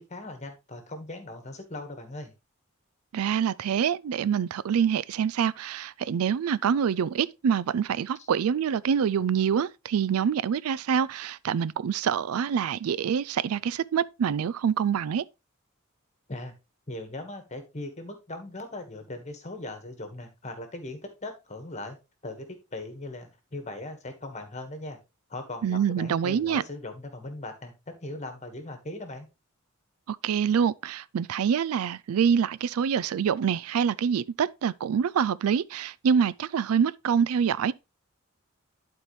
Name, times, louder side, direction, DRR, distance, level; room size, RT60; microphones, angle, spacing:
voice 1, 0.0-2.3 16.3-16.5 16.9-22.0 22.2-25.0 25.3-29.3, left 2 dB, 35° left, 1.5 m, -39 dB
voice 2, 3.1-15.2 25.6-26.6 30.1-37.7, right 7 dB, 85° right, 0.4 m, -26 dB
11.0 x 4.4 x 3.2 m
head